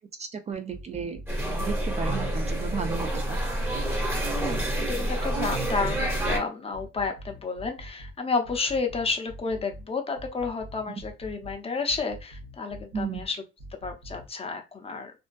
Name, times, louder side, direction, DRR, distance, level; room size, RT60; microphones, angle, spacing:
voice 1, 0.2-3.4 12.9-13.2, right 5 dB, 35° right, 7 dB, 0.3 m, -34 dB
sound 1, 0.5-1.3 1.6-3.0 3.3-4.7 5.0-6.4 6.7-8.1 8.4-9.8 10.2-11.6 11.9-13.3 13.6-14.3, equal, 75° right, 0.7 m, -43 dB
sound 2, 1.3-6.4, right 1 dB, 10° right, 0.8 m, -28 dB
voice 2, 4.3-13.4 13.8-15.1, left 4 dB, 30° left, 5 dB, 0.5 m, -31 dB
2.5 x 2.2 x 2.2 m, 0.26 s
cardioid pair, 90°, 20 cm